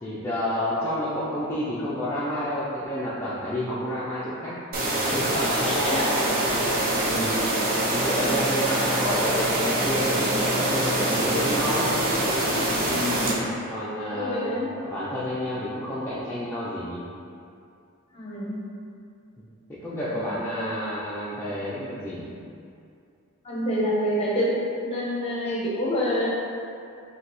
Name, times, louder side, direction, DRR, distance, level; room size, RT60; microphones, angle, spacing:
voice 1, 0.0-4.6 5.0-5.7 7.0-7.4 7.8-11.9 13.3-14.5 14.8-17.0 19.4-19.5 19.8-22.3, equal, 10° left, -11 dB, 0.5 m, -30 dB
sound 1, 4.7-13.3, right 1 dB, 45° right, 0.7 m, -24 dB
voice 2, 5.3-6.1 12.8-13.4 14.1-14.7 18.1-18.6 20.1-20.3 23.4-24.5 24.8-26.3, equal, 30° left, -5 dB, 0.8 m, -27 dB
4.9 x 2.9 x 3.0 m, 2.5 s
head